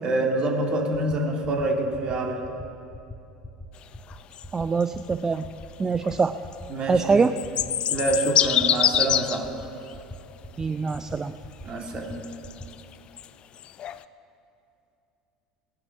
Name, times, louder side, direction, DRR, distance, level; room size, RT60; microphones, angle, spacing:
voice 1, 0.0-2.4 6.7-7.3 7.9-9.5 11.6-12.2, right 2 dB, 45° right, 1 dB, 2.5 m, -26 dB
sound 1, 1.1-1.2 1.4-1.6 1.9-2.1 2.4-2.6 2.9-3.1 3.4-3.7 3.9-4.2 4.4-4.6 4.9-5.1 5.4-5.6 5.9-6.1 6.4-6.7 6.9-7.1 7.4-7.7 7.9-8.1 8.4-8.6 8.9-9.2 9.4-9.6 9.9-10.1 10.4-10.6 10.9-11.1 11.4-11.6 11.9-12.1 12.4-12.7, left 2 dB, 10° left, 1.8 m, -41 dB
sound 2, 4.1-4.4 4.8-5.0 5.3-5.4 6.0-6.1 6.5-6.6 7.2-9.5 9.9-10.0 10.9-11.0 12.0-13.3 13.6-14.0, left 10 dB, 45° left, 0.5 m, -25 dB
voice 2, 4.5-5.5 5.8-6.3 6.9-7.3 10.6-11.3, right 4 dB, 25° right, 10 dB, 0.5 m, -24 dB
17.5 x 10.5 x 5.9 m, 2.7 s
hypercardioid pair, 75°, 2 cm